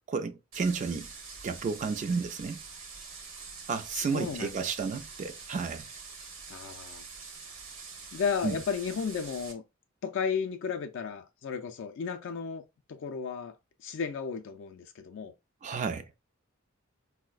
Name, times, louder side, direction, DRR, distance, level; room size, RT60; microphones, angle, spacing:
voice 1, 0.1-1.1 1.4-2.6 3.7-5.9 8.4-8.6 15.6-16.1, right 5 dB, 35° right, 0.3 m, -32 dB
sound 1, 0.5-9.5, right 4 dB, 70° right, 0.9 m, -45 dB
voice 2, 3.9-4.7 6.5-7.0 8.1-9.6 10.0-12.6 12.9-13.6 13.8-15.3, left 6 dB, 65° left, 0.4 m, -34 dB
4.5 x 2.1 x 2.3 m
head